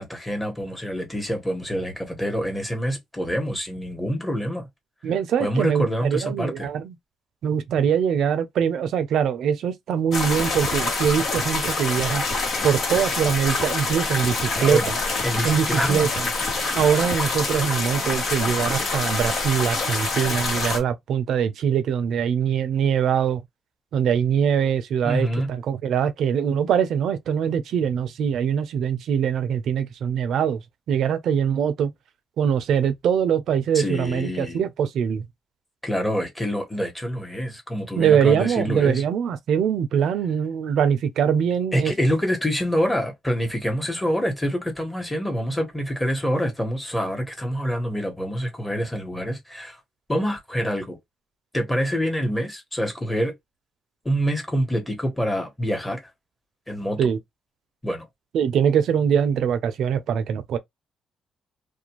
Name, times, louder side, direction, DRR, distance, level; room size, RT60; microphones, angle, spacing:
voice 1, 0.0-4.7 5.4-6.7 14.5-14.9 15.2-16.1 25.0-25.5 33.7-34.6 35.8-39.0 41.7-49.8 50.1-51.0 51.5-53.3 54.0-56.0 56.7-57.0 57.8-58.1, equal, 10° left, 1.2 m, -26 dB
voice 2, 5.0-6.9 7.4-12.2 12.6-15.0 15.4-16.3 16.7-23.4 23.9-30.6 30.9-31.9 32.4-35.3 38.0-41.9 57.0-57.2 58.3-60.6, right 8 dB, 75° right, 0.5 m, -23 dB
sound 1, 10.1-20.8, left 3 dB, 65° left, 1.1 m, -26 dB
2.5 x 2.2 x 2.9 m
cardioid pair, 90°, 0 cm